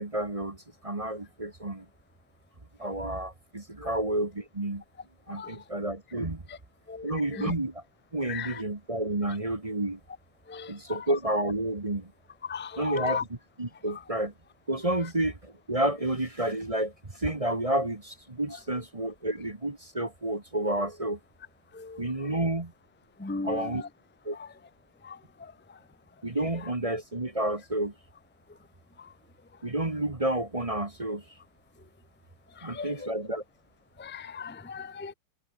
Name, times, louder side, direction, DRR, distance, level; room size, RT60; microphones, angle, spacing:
voice 1, 0.0-1.8 2.8-4.8 5.3-6.4 7.0-7.8 8.1-10.0 10.7-12.1 12.8-13.3 13.6-14.3 14.7-21.2 22.0-22.7 23.4-23.8 24.2-24.4 26.2-27.9 29.6-31.2 32.6-33.4, right 1 dB, 20° right, 1.5 m, -30 dB
voice 2, 6.9-7.5 8.3-8.6 10.5-11.0 12.4-13.2 21.7-22.1 23.2-23.9 24.4-24.5 25.0-25.5 29.0-29.1 32.6-33.1 34.0-35.1, left 5 dB, 10° left, 0.8 m, -37 dB
omnidirectional pair, 2.0 m